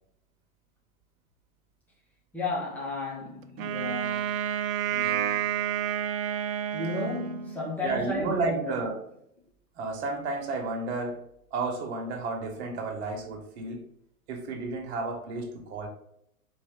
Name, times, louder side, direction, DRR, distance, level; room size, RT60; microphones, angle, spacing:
voice 1, 2.3-4.5 4.9-5.5 6.7-8.8, left 2 dB, 5° left, 0.4 m, -34 dB
Wind instrument woodwind instrument, 3.6-7.8, right 10 dB, 65° right, 0.5 m, -30 dB
voice 2, 7.8-9.0 9.8-11.2 11.5-13.8 14.3-15.9, right 3 dB, 50° right, 1.2 m, -32 dB
4.4 x 2.9 x 3.6 m
figure-of-eight pair, 110°, 44 cm